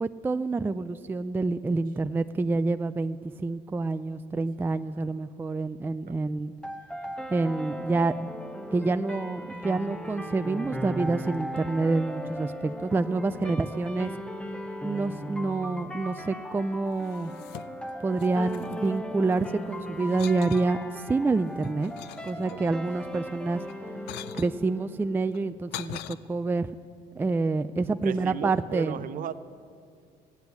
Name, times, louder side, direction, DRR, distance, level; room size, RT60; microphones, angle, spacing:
voice 1, 0.0-6.5 7.3-8.3 8.7-14.1 14.8-17.3 18.0-21.9 22.2-23.6 24.4-26.7 27.1-29.1, right 3 dB, 10° right, 10 dB, 0.3 m, -27 dB
sound 1, 6.6-25.6, equal, 5° left, 0.8 m, -38 dB
sound 2, 16.9-17.9 18.2-19.5 20.0-20.7 21.3-22.8 23.6-24.5 25.3-26.1, left 14 dB, 85° left, 0.5 m, -42 dB
voice 2, 28.0-29.3, right 9 dB, 55° right, 12 dB, 0.7 m, -35 dB
14.5 x 9.6 x 8.2 m, 2.3 s
cardioid pair, 110°, 17 cm